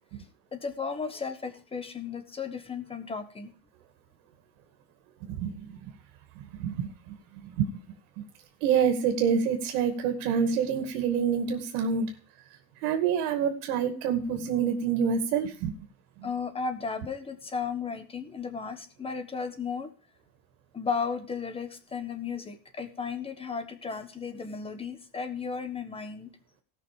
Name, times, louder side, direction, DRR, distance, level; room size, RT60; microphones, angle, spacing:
voice 1, 0.5-3.5 16.2-19.9 20.7-26.3, left 5 dB, 15° left, 9 dB, 1.3 m, -34 dB
voice 2, 5.2-5.8 6.4-7.7 8.2-8.3 8.6-12.1 12.8-15.7 16.2-16.3, right 7 dB, 75° right, 6 dB, 2.3 m, -27 dB
17.5 x 6.0 x 5.0 m, 0.40 s
cardioid pair, 160°, 44 cm